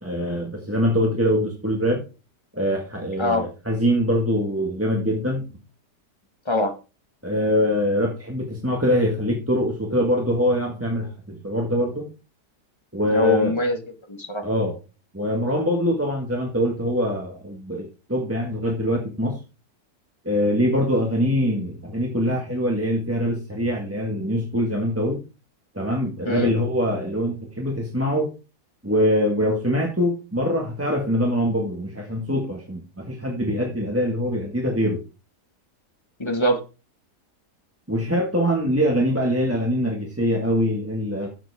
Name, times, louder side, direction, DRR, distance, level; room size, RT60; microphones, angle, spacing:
voice 1, 0.0-2.0 2.5-5.5 7.2-12.1 12.9-13.5 14.4-14.7 15.1-19.4 20.2-25.2 25.7-28.3 28.8-35.0 37.9-41.3, equal, 10° right, 1 dB, 1.7 m, -23 dB
voice 2, 6.4-6.7 13.1-13.8 14.1-14.4 26.2-26.5 36.2-36.6, left 1 dB, 15° left, 5 dB, 1.5 m, -23 dB
12.5 x 7.6 x 3.5 m, 0.30 s
omnidirectional pair, 1.7 m